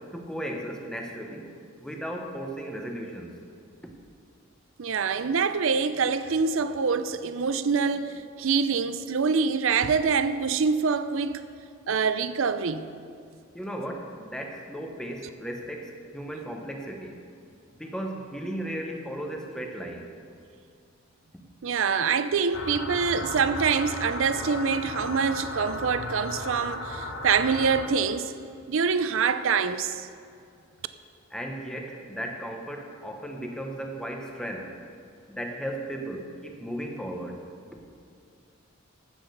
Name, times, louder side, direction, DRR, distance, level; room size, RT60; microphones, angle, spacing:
voice 1, 0.0-1.5 1.8-3.3 13.5-17.2 17.7-20.1 31.3-34.7 35.3-37.4 37.7-37.8, right 1 dB, 5° left, 1.0 m, -35 dB
voice 2, 4.8-11.4 11.9-12.9 21.6-28.3 28.7-30.1, right 5 dB, 70° right, 0.5 m, -25 dB
sound 1, 22.5-27.9, left 2 dB, 60° left, 1.0 m, -35 dB
14.5 x 6.1 x 6.6 m
head